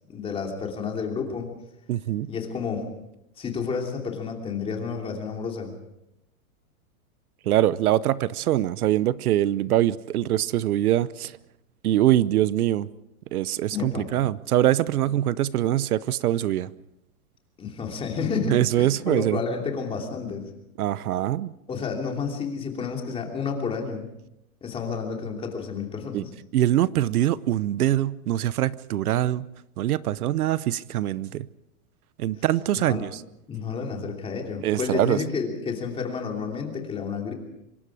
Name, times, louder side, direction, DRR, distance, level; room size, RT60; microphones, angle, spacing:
voice 1, 0.1-1.5 2.3-2.9 3.4-5.7 13.7-14.1 17.6-20.5 21.7-24.1 24.6-26.2 32.8-33.0 33.5-37.3, left 5 dB, 15° left, 2 dB, 3.0 m, -30 dB
voice 2, 1.9-2.3 7.5-11.3 11.8-12.9 13.3-16.7 18.5-19.4 20.8-21.5 26.1-26.2 26.5-29.5 29.8-31.5 32.2-33.2 34.6-35.2, right 13 dB, 80° right, 18 dB, 0.9 m, -23 dB
25.0 x 22.5 x 4.9 m, 0.84 s
supercardioid pair, 165°, 43 cm